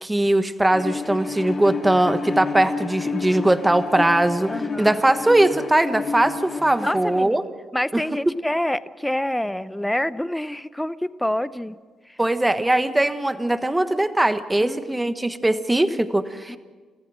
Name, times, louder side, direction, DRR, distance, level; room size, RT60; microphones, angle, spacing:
voice 1, 0.0-4.5 4.8-7.4 7.9-8.0 12.2-16.6, right 1 dB, 10° right, 10 dB, 1.3 m, -20 dB
Bowed string instrument, 0.7-7.3, left 4 dB, 40° left, 2.4 m, -30 dB
voice 2, 4.5-5.0 6.8-7.4 7.7-11.8 12.1-12.2 14.6-14.8 16.5-16.6, left 1 dB, 5° left, 14 dB, 0.7 m, -27 dB
29.5 x 15.0 x 6.3 m, 1.4 s
cardioid pair, 90°, 0 cm